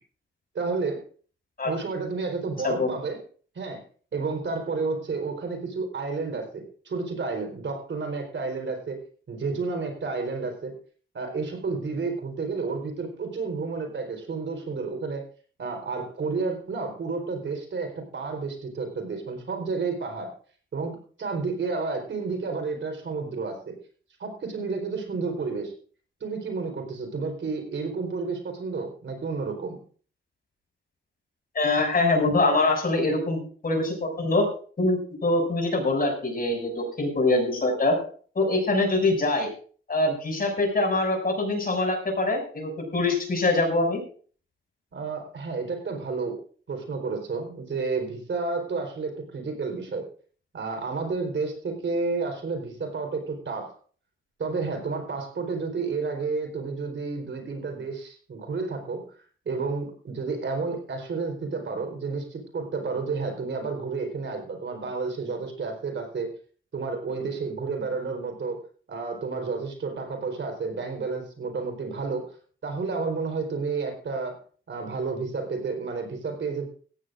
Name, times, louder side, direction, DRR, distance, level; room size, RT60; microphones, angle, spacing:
voice 1, 0.5-1.0 1.7-3.2 3.5-3.8 4.1-9.0 9.3-10.7 11.1-15.2 15.6-20.3 20.7-23.8 24.2-25.7 26.2-29.8 44.9-46.4 46.7-50.1 50.5-53.8 54.4-59.0 59.5-66.3 66.7-68.6 68.9-72.3 72.6-74.4 74.7-76.7, right 4 dB, 65° right, 4 dB, 4.2 m, -31 dB
voice 2, 2.6-3.0 31.5-34.5 34.8-38.0 38.3-39.5 39.9-44.0, left 2 dB, 45° left, 2 dB, 6.7 m, -24 dB
17.5 x 15.0 x 2.6 m, 0.42 s
cardioid pair, 85°, 21 cm